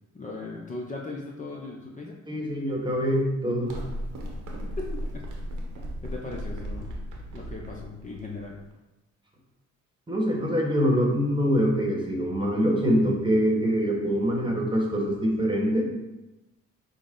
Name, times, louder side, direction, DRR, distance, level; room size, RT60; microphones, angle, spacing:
voice 1, 0.1-2.4 4.8-5.2 6.0-7.0 7.3-8.6, left 3 dB, 25° left, -2 dB, 0.6 m, -38 dB
voice 2, 2.3-3.8 10.1-15.9, equal, 15° right, -2 dB, 1.2 m, -24 dB
sound 1, 3.6-8.7, equal, 90° right, 1.0 m, -36 dB
6.2 x 2.1 x 3.7 m, 1.0 s
cardioid pair, 90°, 30 cm